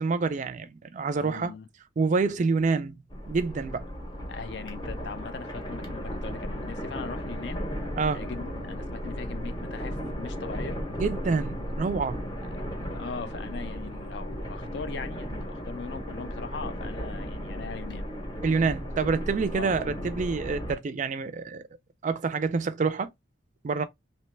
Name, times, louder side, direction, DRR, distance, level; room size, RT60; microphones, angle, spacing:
voice 1, 0.0-1.5 2.0-3.0 3.3-3.9 8.0-8.2 11.0-12.3 18.4-21.6 22.0-23.1 23.6-23.8, right 4 dB, 40° right, 0.3 m, -27 dB
voice 2, 1.2-1.7 4.3-7.6 8.1-10.8 12.9-18.1 19.5-19.8, left 5 dB, 60° left, 0.4 m, -40 dB
sound 1, 3.1-20.8, equal, 20° left, 0.7 m, -35 dB
2.9 x 2.2 x 3.1 m
head